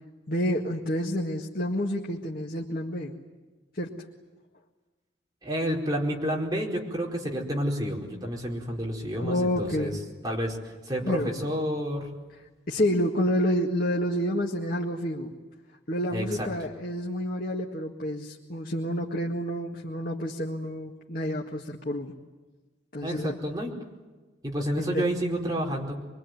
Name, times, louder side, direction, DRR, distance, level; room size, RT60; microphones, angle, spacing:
voice 1, 0.3-3.2 3.7-4.1 9.2-10.0 11.1-11.3 12.7-15.3 15.9-22.1 22.9-23.3 24.8-25.1, equal, 50° left, 0 dB, 1.9 m, -29 dB
voice 2, 5.4-10.0 10.2-10.6 10.8-12.1 16.1-16.5 23.0-23.7 24.4-26.0, equal, 20° right, -2 dB, 4.7 m, -30 dB
25.0 x 23.5 x 9.4 m, 1.3 s
head